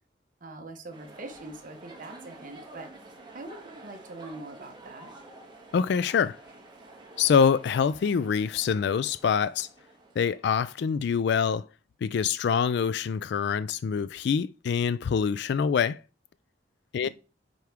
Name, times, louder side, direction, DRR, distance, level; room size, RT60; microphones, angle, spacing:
voice 1, 0.4-2.9 3.3-5.1 17.0-17.1, right 2 dB, 50° right, 1.1 m, -43 dB
sound 1, 0.9-10.8, right 2 dB, 25° right, 1.7 m, -49 dB
voice 2, 5.7-6.4 7.2-9.7 10.2-11.7 12.0-16.0 16.9-17.1, left 6 dB, 65° left, 0.3 m, -25 dB
9.3 x 4.7 x 3.5 m
head